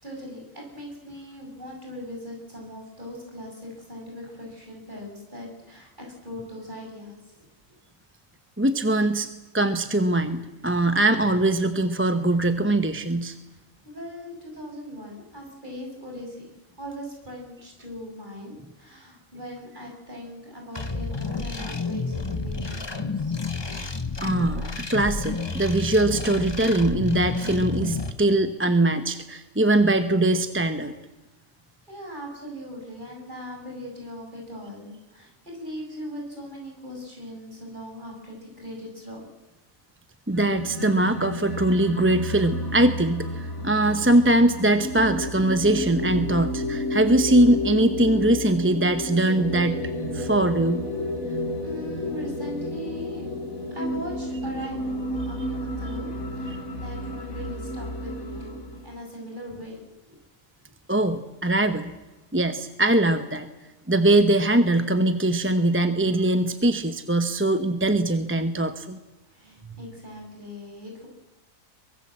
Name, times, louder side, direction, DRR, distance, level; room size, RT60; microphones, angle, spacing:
voice 1, 0.0-7.2 13.8-16.5 16.8-23.3 31.9-39.2 51.2-53.2 53.7-60.2 69.3-71.1, equal, 35° right, -1 dB, 7.0 m, -40 dB
voice 2, 8.6-9.3 9.5-13.4 24.2-30.9 40.3-49.8 50.1-50.8 56.5-56.6 60.9-61.9 62.3-63.5 63.9-69.0 69.6-69.8, right 1 dB, 10° right, 9 dB, 0.9 m, -22 dB
sound 1, 20.7-28.1, left 4 dB, 20° left, 1.1 m, -30 dB
sound 2, 40.3-58.9, left 1 dB, 85° left, 3.4 m, -31 dB
23.5 x 22.5 x 7.6 m, 1.1 s
omnidirectional pair, 1.4 m